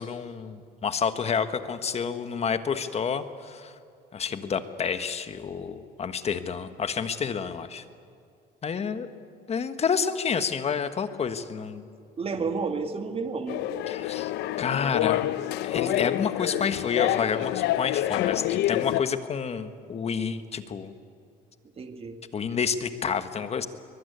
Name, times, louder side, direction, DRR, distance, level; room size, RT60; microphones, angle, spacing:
voice 1, 0.0-3.7 4.1-7.8 8.6-9.1 9.5-11.8 13.9-15.2 15.6-20.9 22.3-23.7, left 6 dB, 40° left, 10 dB, 1.4 m, -29 dB
voice 2, 12.2-13.9 15.9-16.0 21.8-22.2, right 4 dB, 35° right, 7 dB, 1.9 m, -31 dB
sound 1, 13.5-19.0, left 14 dB, 85° left, 0.7 m, -27 dB
22.5 x 21.5 x 9.5 m, 2.3 s
cardioid pair, 110°, 17 cm